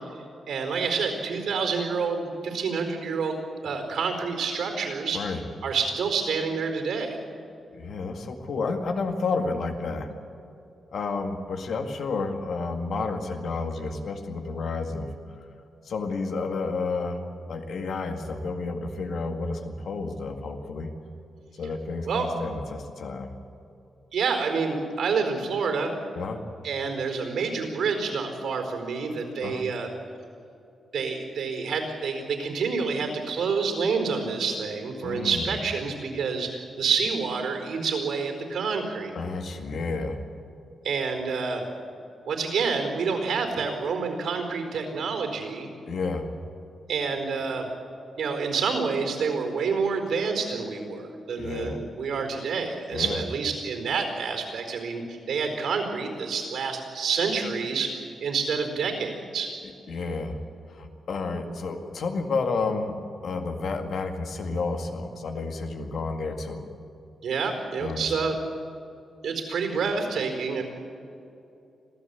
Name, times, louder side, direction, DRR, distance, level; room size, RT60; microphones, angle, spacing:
voice 1, 0.5-3.4 3.6-5.2 5.6-7.2 22.1-22.3 24.1-25.9 26.6-29.9 30.9-39.1 40.8-41.7 42.2-45.7 46.9-47.7 48.2-57.9 58.2-59.5 67.2-68.3 69.2-70.6, right 5 dB, 75° right, 5 dB, 4.5 m, -28 dB
voice 2, 7.7-10.1 10.9-15.1 15.8-17.2 17.5-20.9 21.5-23.3 26.1-26.4 29.4-29.7 35.0-35.6 39.1-40.2 45.9-46.3 51.4-51.8 52.9-53.2 59.9-60.4 60.7-63.0 63.2-66.7 67.8-68.4, left 3 dB, 60° left, 5 dB, 2.1 m, -31 dB
26.0 x 16.0 x 8.4 m, 2.7 s
wide cardioid pair, 170°, 0 cm